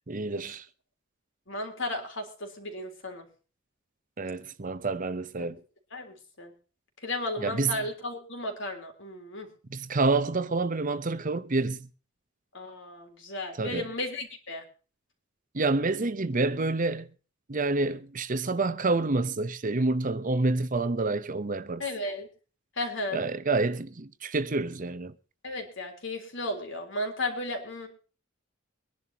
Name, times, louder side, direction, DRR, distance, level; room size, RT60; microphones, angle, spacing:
voice 1, 0.1-0.6 4.2-5.6 7.4-7.8 9.7-11.9 13.6-13.8 15.5-17.1 17.5-21.8 23.1-25.1, right 3 dB, 40° right, 0.8 m, -28 dB
voice 2, 1.5-3.3 5.9-6.5 7.0-9.5 12.5-14.6 21.8-22.3 22.8-23.2 25.4-27.9, left 1 dB, 65° left, 3.7 m, -34 dB
23.5 x 11.0 x 2.9 m
head